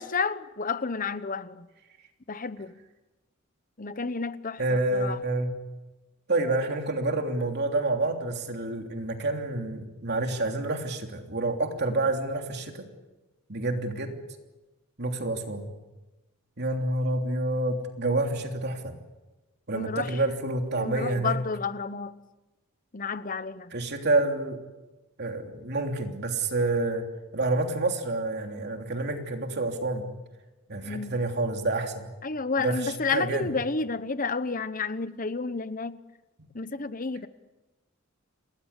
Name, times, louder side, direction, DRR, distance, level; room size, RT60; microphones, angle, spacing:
voice 1, 0.0-1.7 2.3-2.8 3.8-5.2 19.7-20.2 20.7-22.1 22.9-23.7 30.8-31.2 32.2-36.0 36.5-37.3, left 4 dB, 40° left, 14 dB, 1.0 m, -31 dB
voice 2, 4.6-5.5 6.3-12.9 13.5-14.1 15.0-15.7 16.6-18.9 19.7-21.4 23.7-24.6 25.2-27.0 27.3-30.1 30.7-32.1 32.6-33.5, right 2 dB, 50° right, 3 dB, 3.1 m, -28 dB
28.5 x 19.5 x 8.4 m, 1.1 s
head